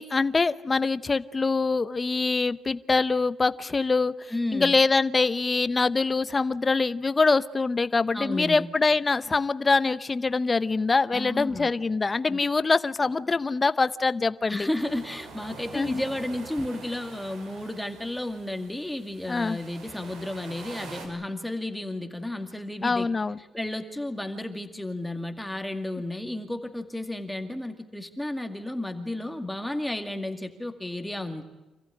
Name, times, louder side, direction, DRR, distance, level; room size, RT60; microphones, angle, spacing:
voice 1, 0.0-14.7 15.7-16.0 19.3-19.6 22.8-23.4, left 4 dB, 30° left, 14 dB, 0.9 m, -24 dB
voice 2, 4.3-4.8 8.1-8.7 11.1-11.7 12.3-12.4 14.5-23.1 23.5-31.4, left 1 dB, 5° left, 6 dB, 2.1 m, -32 dB
sound 1, 14.7-21.1, right 4 dB, 85° right, 5.4 m, -45 dB
27.5 x 15.0 x 9.9 m, 1.1 s
cardioid pair, 90°, 0 cm